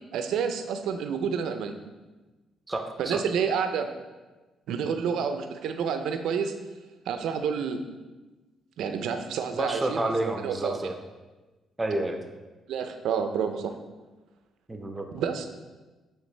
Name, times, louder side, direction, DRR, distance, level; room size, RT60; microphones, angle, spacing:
voice 1, 0.1-1.7 3.0-3.9 4.7-6.5 7.1-7.8 8.8-10.9 12.7-13.7 15.1-15.5, right 6 dB, 80° right, 7 dB, 0.5 m, -29 dB
voice 2, 2.7-3.2 9.5-10.9 11.8-12.2 14.7-15.1, right 2 dB, 20° right, 5 dB, 0.6 m, -29 dB
9.2 x 3.3 x 3.2 m, 1.2 s
cardioid pair, 90°, 0 cm